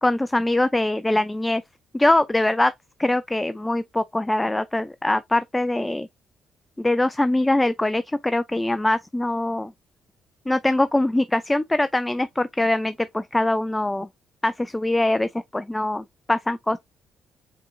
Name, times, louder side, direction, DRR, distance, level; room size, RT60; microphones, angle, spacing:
voice 1, 0.0-1.6 1.9-2.7 3.0-6.1 6.8-9.7 10.5-14.1 14.4-16.8, left 1 dB, 10° left, 0.3 m, -23 dB
5.3 x 3.7 x 2.7 m
cardioid pair, 90°, 0 cm